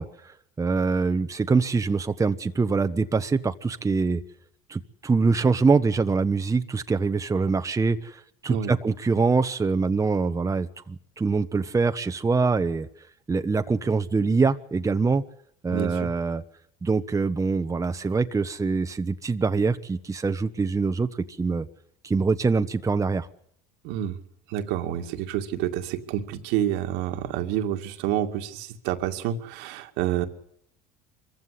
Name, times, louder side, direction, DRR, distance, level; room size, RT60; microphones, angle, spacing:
voice 1, 0.0-4.2 4.7-12.9 13.3-15.2 15.6-16.4 16.8-21.7 22.0-23.3, right 4 dB, 15° right, 9 dB, 1.1 m, -24 dB
voice 2, 15.7-16.1 23.8-24.2 24.5-30.3, right 11 dB, 70° right, 6 dB, 2.3 m, -28 dB
24.0 x 15.5 x 10.0 m, 0.69 s
supercardioid pair, 90°, 19 cm